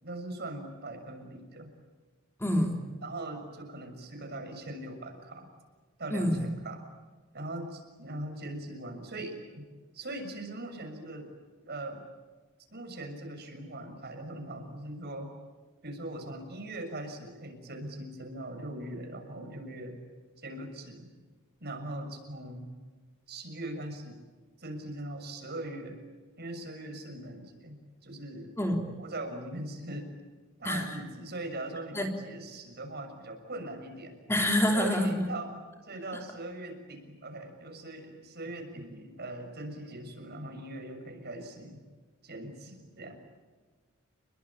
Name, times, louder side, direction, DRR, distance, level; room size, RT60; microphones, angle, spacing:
voice 1, 0.0-1.7 3.0-5.5 6.0-6.8 7.3-9.6 9.9-11.3 11.6-12.1 12.7-15.3 15.8-20.0 20.4-21.1 21.6-22.7 23.3-24.2 24.6-26.0 26.4-27.8 28.0-28.5 29.0-30.1 30.6-34.2 34.6-41.8 42.2-43.2, right 1 dB, 50° right, 5 dB, 6.8 m, -40 dB
voice 2, 2.4-2.8 6.1-6.4 28.6-28.9 30.6-30.9 31.9-32.1 34.3-35.2, left 1 dB, 10° left, 3 dB, 3.4 m, -27 dB
30.0 x 22.5 x 8.9 m, 1.4 s
head